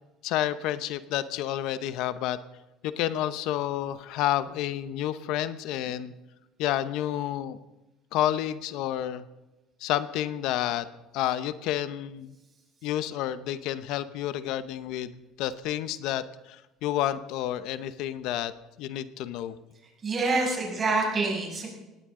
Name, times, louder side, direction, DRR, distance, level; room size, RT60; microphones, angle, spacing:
voice 1, 0.2-2.4 2.8-6.1 6.6-7.6 8.1-9.2 9.8-10.9 11.1-12.3 12.8-18.5 18.8-19.6 20.4-20.5, left 12 dB, 70° left, 13 dB, 0.8 m, -30 dB
voice 2, 20.0-21.7, right 3 dB, 30° right, -1 dB, 6.5 m, -26 dB
19.0 x 17.0 x 3.8 m, 1.1 s
cardioid pair, 130°, 0 cm